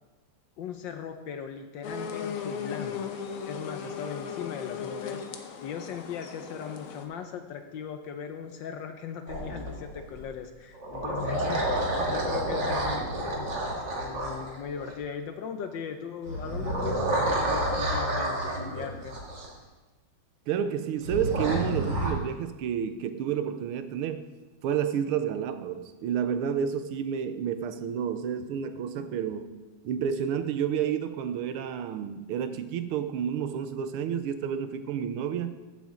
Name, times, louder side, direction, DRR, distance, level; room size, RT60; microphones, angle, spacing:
voice 1, 0.6-3.2 3.5-19.2, left 7 dB, 70° left, 7 dB, 1.2 m, -39 dB
sound 1, 1.8-7.0, left 7 dB, 90° left, 1.8 m, -37 dB
sound 2, 9.3-10.2 10.7-15.0 16.2-19.5 21.0-22.1, right 1 dB, 55° right, 2.5 m, -29 dB
voice 2, 20.5-24.3 24.6-29.5 29.8-35.6, right 8 dB, 80° right, 10 dB, 1.6 m, -30 dB
15.0 x 7.2 x 3.7 m, 1.2 s
omnidirectional pair, 2.4 m